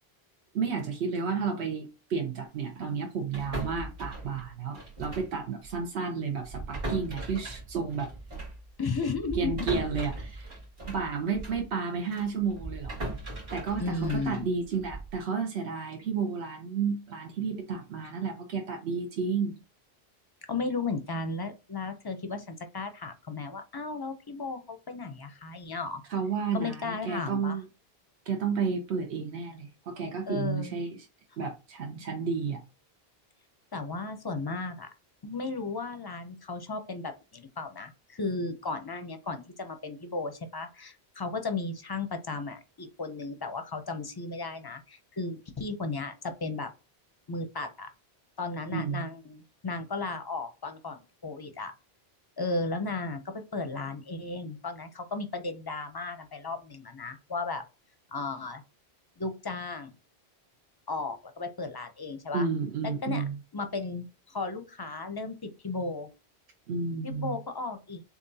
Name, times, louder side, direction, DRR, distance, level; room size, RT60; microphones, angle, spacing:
voice 1, 0.5-8.1 9.3-10.5 10.9-13.0 13.5-19.6 26.1-27.6 28.3-30.9 31.4-32.6 48.7-49.0 62.3-63.4 66.7-67.4, right 5 dB, 85° right, 1.1 m, -31 dB
sound 1, 3.3-5.4 5.6-5.8 6.4-11.7 12.1-15.2, right 2 dB, 60° right, 2.6 m, -38 dB
voice 2, 8.8-9.5 13.8-14.5 20.5-26.0 26.5-27.6 30.3-30.9 33.7-34.9 35.2-46.7 47.3-47.9 48.4-51.7 52.4-57.6 58.1-58.6 59.2-59.9 60.9-62.5 63.0-63.2 63.5-66.1 67.0-68.0, left 3 dB, 30° left, 0.4 m, -35 dB
6.8 x 2.4 x 2.7 m
omnidirectional pair, 1.1 m